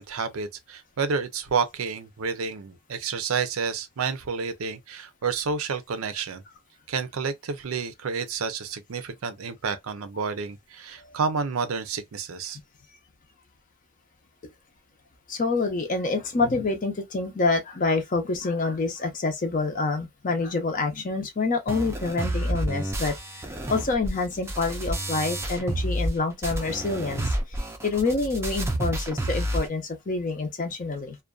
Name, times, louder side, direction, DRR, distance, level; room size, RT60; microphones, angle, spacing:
voice 1, 0.0-6.4 6.9-12.6, right 5 dB, 80° right, 0.5 m, -30 dB
voice 2, 15.3-23.2 23.7-31.2, left 3 dB, 40° left, 0.5 m, -27 dB
sound 1, 21.7-26.2 26.4-29.7, right 1 dB, 10° right, 0.4 m, -29 dB
2.5 x 2.2 x 2.3 m
head